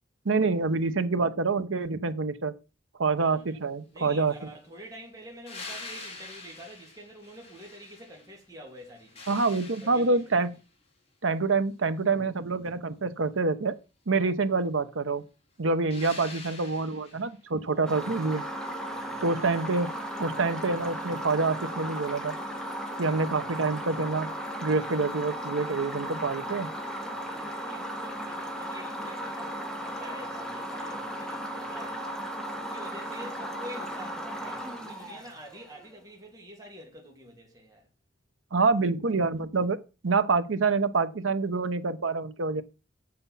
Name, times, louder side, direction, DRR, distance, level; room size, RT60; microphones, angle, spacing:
voice 1, 0.2-2.5 3.0-4.3 9.3-10.5 11.2-13.7 14.1-15.2 15.6-18.4 19.2-19.9 20.2-22.4 23.0-24.3 24.6-26.7 38.5-42.6, right 3 dB, 90° right, 0.8 m, -26 dB
voice 2, 3.2-3.6 3.9-9.4 9.8-10.4 17.6-18.1 18.9-19.4 26.2-32.2 32.5-37.9, right 1 dB, 20° right, 2.7 m, -47 dB
sound 1, 5.5-8.4 8.8-10.5 15.9-17.3 19.9-20.0, left 3 dB, 35° left, 3.4 m, -45 dB
sound 2, 17.9-35.8, equal, 5° left, 1.6 m, -36 dB
7.8 x 7.1 x 5.6 m
head